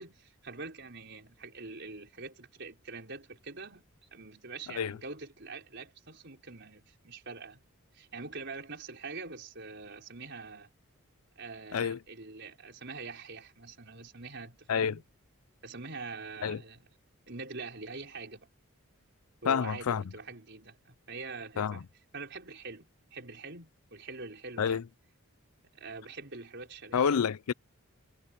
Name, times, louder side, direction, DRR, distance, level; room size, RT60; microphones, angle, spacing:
voice 1, 0.0-7.6 7.9-10.7 11.4-15.0 15.6-16.9 17.3-18.5 19.4-21.8 22.1-24.8 25.7-27.2, right 3 dB, 55° right, 4.8 m, -44 dB
voice 2, 14.7-15.0 16.4-16.6 19.5-20.0 21.6-21.8 24.6-24.8 26.9-27.5, left 7 dB, 90° left, 0.5 m, -28 dB
head